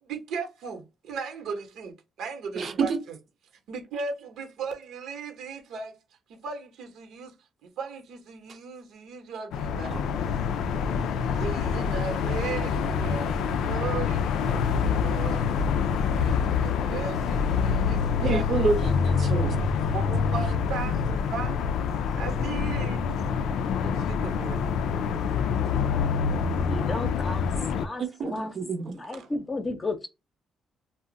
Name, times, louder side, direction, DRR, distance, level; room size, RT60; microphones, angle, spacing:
voice 1, 0.0-3.2 3.7-6.0 6.3-7.3 7.6-10.1 11.4-15.5 16.1-18.6 19.9-21.7 22.2-23.0 23.8-24.6 29.1-29.3, right 5 dB, 80° right, 0.9 m, -37 dB
voice 2, 2.6-3.0 9.9-10.0 18.2-19.7 28.0-29.0, right 4 dB, 55° right, 0.7 m, -28 dB
sound 1, 9.5-27.9, left 6 dB, 80° left, 0.3 m, -26 dB
voice 3, 26.6-28.5 28.9-30.1, left 2 dB, 25° left, 0.7 m, -33 dB
2.4 x 2.0 x 3.8 m
cardioid pair, 90°, 0 cm